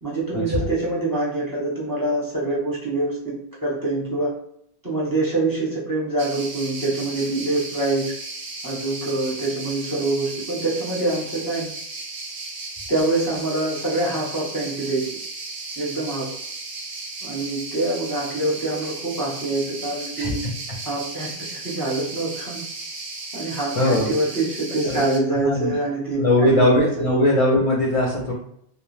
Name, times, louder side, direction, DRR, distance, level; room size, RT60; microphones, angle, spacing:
voice 1, 0.0-4.3 4.8-8.1 8.6-11.7 12.9-15.1 15.8-16.3 17.2-20.4 20.9-21.3 21.6-22.6 23.3-27.0, right 2 dB, 20° right, -5 dB, 0.7 m, -25 dB
sound 1, 6.2-25.2, right 3 dB, 55° right, 0.6 m, -35 dB
voice 2, 23.8-24.1 24.8-25.0 25.3-25.7 26.2-28.3, left 1 dB, 50° left, -3 dB, 0.4 m, -20 dB
2.4 x 2.2 x 3.1 m, 0.70 s
omnidirectional pair, 1.2 m